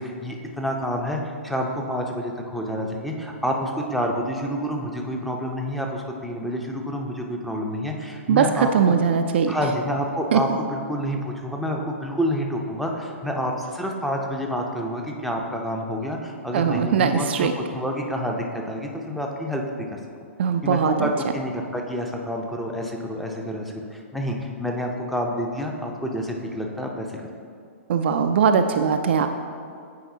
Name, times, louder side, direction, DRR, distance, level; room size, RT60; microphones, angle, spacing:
voice 1, 0.0-8.9 9.5-19.9 20.6-27.1, equal, ahead, 0 dB, 0.6 m, -28 dB
voice 2, 8.3-9.5 10.3-10.4 16.5-17.5 20.4-21.1 27.9-29.3, right 7 dB, 55° right, 6 dB, 0.3 m, -20 dB
9.0 x 4.7 x 2.8 m, 2.3 s
figure-of-eight pair, 115°, 7 cm